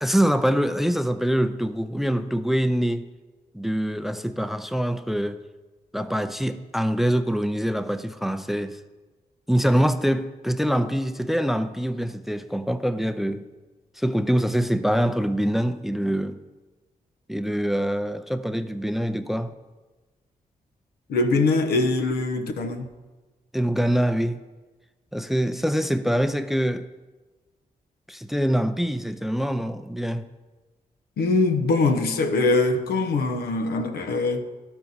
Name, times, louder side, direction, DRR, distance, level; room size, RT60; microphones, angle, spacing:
voice 1, 0.0-3.0 3.5-5.4 5.9-8.8 9.5-13.5 14.0-16.4 17.3-19.5 23.5-24.4 25.1-26.9 28.1-30.3, equal, ahead, 0.5 m, -24 dB
voice 2, 21.1-22.9 31.2-34.4, left 3 dB, 85° left, 0.7 m, -22 dB
12.0 x 4.4 x 4.0 m
supercardioid pair, 55°, 16 cm